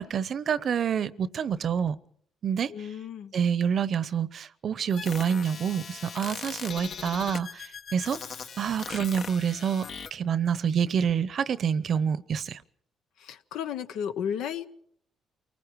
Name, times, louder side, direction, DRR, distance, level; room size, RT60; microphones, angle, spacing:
voice 1, 0.0-2.0 2.4-2.7 3.3-8.2 8.6-9.9 10.1-12.6, right 7 dB, 55° right, 0.8 m, -27 dB
voice 2, 2.7-3.3 13.2-14.7, left 8 dB, 85° left, 1.0 m, -33 dB
sound 1, 4.9-10.1, left 6 dB, 60° left, 1.1 m, -40 dB
28.5 x 19.5 x 4.7 m
cardioid pair, 90°, 0 cm